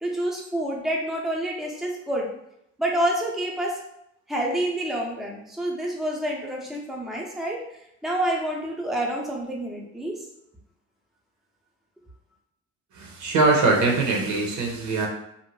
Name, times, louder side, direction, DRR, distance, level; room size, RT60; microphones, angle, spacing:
voice 1, 0.0-2.3 2.8-3.8 4.3-7.6 8.0-10.2, right 1 dB, ahead, -2 dB, 0.5 m, -28 dB
voice 2, 12.9-15.1, right 3 dB, 80° right, 0 dB, 0.7 m, -22 dB
2.6 x 2.1 x 3.0 m, 0.78 s
cardioid pair, 90°, 30 cm